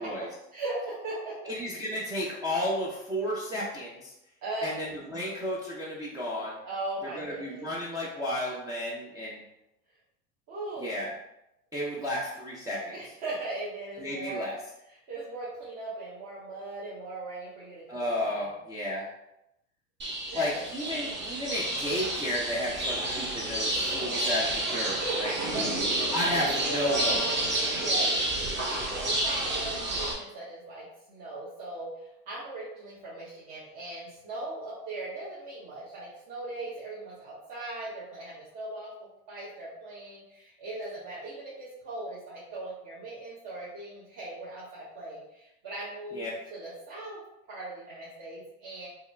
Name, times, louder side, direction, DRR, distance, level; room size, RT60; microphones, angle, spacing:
voice 1, 0.0-1.4 4.4-4.7 6.6-7.7 10.5-10.9 12.9-14.5 15.1-18.5 20.3-21.1 24.6-25.6 27.7-28.2 28.7-47.2 47.5-48.9, right 2 dB, 40° right, -9 dB, 1.2 m, -39 dB
voice 2, 1.4-4.1 4.6-6.6 7.0-9.4 10.8-11.1 11.7-12.9 14.0-14.6 17.9-19.1 20.3-25.3 26.1-27.2 46.1-46.3, left 1 dB, 10° right, -7 dB, 0.5 m, -32 dB
sound 1, 20.0-30.1, right 1 dB, 25° right, 0.9 m, -30 dB
3.6 x 2.2 x 3.1 m, 0.85 s
hypercardioid pair, 95°, 46 cm